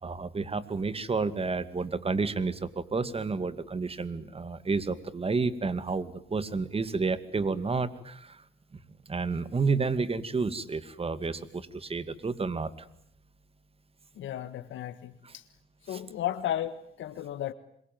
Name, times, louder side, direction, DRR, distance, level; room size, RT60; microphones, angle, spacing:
voice 1, 0.0-8.4 9.1-12.9 15.2-15.3 15.9-16.0, right 4 dB, 30° right, 13 dB, 2.3 m, -30 dB
voice 2, 14.2-15.4 15.8-17.5, left 12 dB, 75° left, 9 dB, 1.6 m, -34 dB
27.0 x 22.5 x 9.4 m, 0.71 s
cardioid pair, 90°, 20 cm